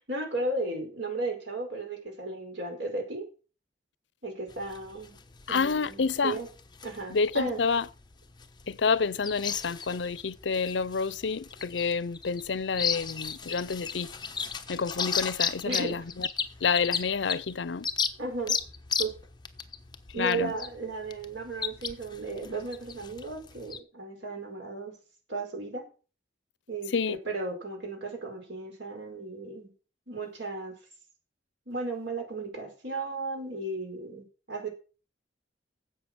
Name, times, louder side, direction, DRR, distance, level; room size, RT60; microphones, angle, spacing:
voice 1, 0.0-3.3 4.2-5.1 5.5-6.5 6.8-7.6 15.6-16.0 18.2-18.6 19.0-19.1 20.1-24.9 25.3-25.8 26.7-29.7 30.1-30.7 31.7-34.7, right 3 dB, 85° right, 4.9 m, -35 dB
sound 1, 4.5-23.8, left 6 dB, 25° left, 1.0 m, -35 dB
voice 2, 5.5-6.4 7.1-7.9 8.7-14.1 14.7-16.3 16.6-17.9 20.2-20.5 26.9-27.2, left 5 dB, 75° left, 0.6 m, -28 dB
11.5 x 8.0 x 6.1 m
head